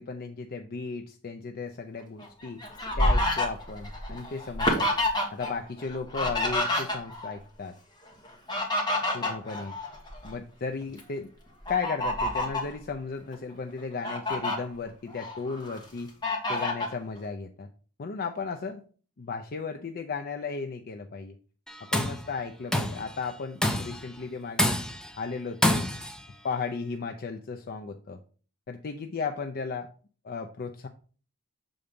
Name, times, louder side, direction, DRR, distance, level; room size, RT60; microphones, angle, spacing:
voice 1, 0.0-2.6 3.0-4.9 5.3-7.7 9.1-9.8 10.2-11.3 11.7-16.1 16.5-17.7 18.0-18.8 19.2-21.4 21.9-24.8 25.2-25.9 26.4-28.2 28.7-29.9 30.2-30.9, left 4 dB, 45° left, 5 dB, 0.5 m, -35 dB
Fowl, 2.2-5.5 5.8-7.3 8.2-10.3 10.8-11.0 11.6-12.7 13.3-13.4 13.8-14.6 15.1-15.8 16.2-16.9, left 1 dB, 20° left, 1.6 m, -28 dB
Tools, 21.7-22.2 22.7-23.1 23.6-24.1 24.6-25.1 25.6-26.2, left 1 dB, 5° left, 0.7 m, -26 dB
6.8 x 3.8 x 5.2 m, 0.40 s
head